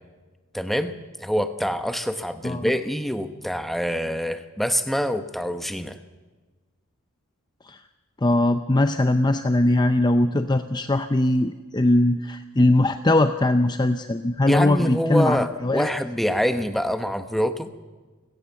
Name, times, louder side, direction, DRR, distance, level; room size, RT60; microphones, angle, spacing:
voice 1, 0.5-0.9 1.2-6.0 14.5-17.7, equal, ahead, 9 dB, 1.0 m, -25 dB
voice 2, 8.2-15.9, left 1 dB, 20° left, 9 dB, 0.6 m, -21 dB
29.0 x 17.0 x 7.1 m, 1.3 s
head